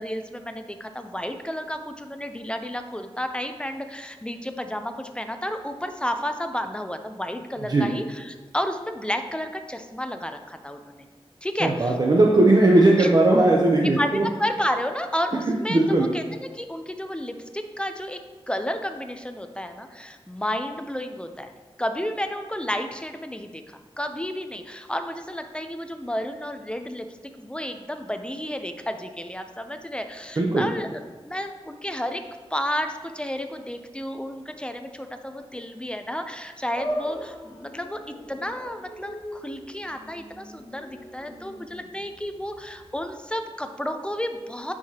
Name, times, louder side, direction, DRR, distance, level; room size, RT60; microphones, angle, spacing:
voice 1, 0.0-11.0 11.4-12.0 13.0-13.1 13.8-18.2 18.5-21.5 21.8-27.1 27.4-32.3 32.5-38.0 38.3-44.7, equal, 10° left, 7 dB, 0.5 m, -31 dB
voice 2, 11.6-14.2 15.7-16.1 30.4-30.7, right 2 dB, 40° right, -1 dB, 0.6 m, -18 dB
sound 1, 36.7-43.2, equal, 85° left, 1.5 m, -38 dB
9.6 x 4.8 x 2.8 m, 1.3 s
wide cardioid pair, 100°, 10 cm